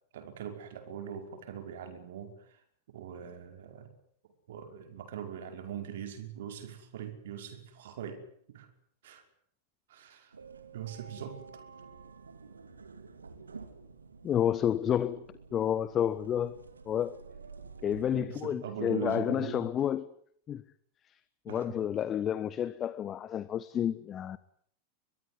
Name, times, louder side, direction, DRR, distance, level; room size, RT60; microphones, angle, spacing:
voice 1, 0.1-2.6 2.9-3.9 4.2-8.7 9.0-9.2 9.9-10.3 10.7-11.4 18.1-19.7 21.5-21.8, right 9 dB, 60° right, 5.4 m, -41 dB
sound 1, 10.3-18.2, right 4 dB, 75° right, 2.6 m, -50 dB
voice 2, 14.2-15.2 15.5-16.6 16.9-17.2 17.8-20.0 20.5-20.6 21.5-24.4, left 10 dB, 25° left, 1.1 m, -30 dB
23.0 x 22.5 x 9.8 m
figure-of-eight pair, 90°, 0 cm